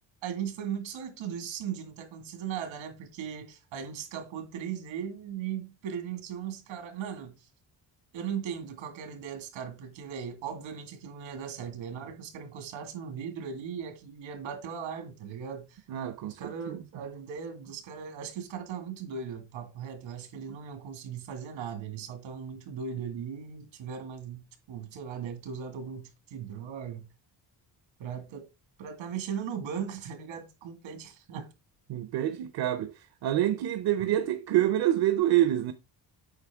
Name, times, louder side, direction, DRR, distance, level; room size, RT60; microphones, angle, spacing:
voice 1, 0.2-7.5 8.1-15.8 16.4-27.1 28.0-28.5 28.8-31.5 34.0-34.1, right 7 dB, 90° right, 2.1 m, -38 dB
voice 2, 15.9-16.4 16.7-16.8 31.9-35.7, right 12 dB, 60° right, 0.7 m, -27 dB
8.1 x 5.3 x 3.5 m
cardioid pair, 175°, 45 cm